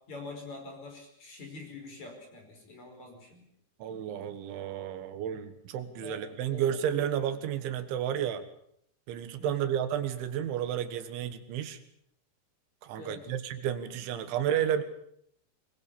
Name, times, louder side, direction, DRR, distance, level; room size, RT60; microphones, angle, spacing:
voice 1, 0.1-3.4 6.0-6.2 6.5-6.7 9.4-9.7 13.0-13.2, left 3 dB, 40° left, 3 dB, 6.1 m, -45 dB
voice 2, 3.8-8.4 9.1-11.8 12.8-14.8, right 9 dB, 85° right, 10 dB, 3.9 m, -32 dB
22.5 x 21.5 x 7.0 m, 0.70 s
omnidirectional pair, 5.3 m